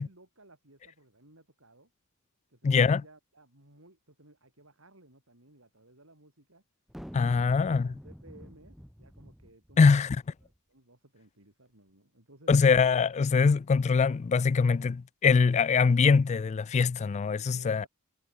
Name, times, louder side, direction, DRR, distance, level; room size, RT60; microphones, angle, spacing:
voice 1, 0.0-1.9 2.5-6.6 7.3-12.5 17.5-17.9, right 2 dB, 70° right, 7.3 m, -58 dB
voice 2, 2.6-3.0 7.1-7.9 9.8-10.2 12.5-17.9, left 5 dB, 30° left, 0.3 m, -23 dB
sound 1, 6.9-10.5, equal, ahead, 1.1 m, -48 dB
head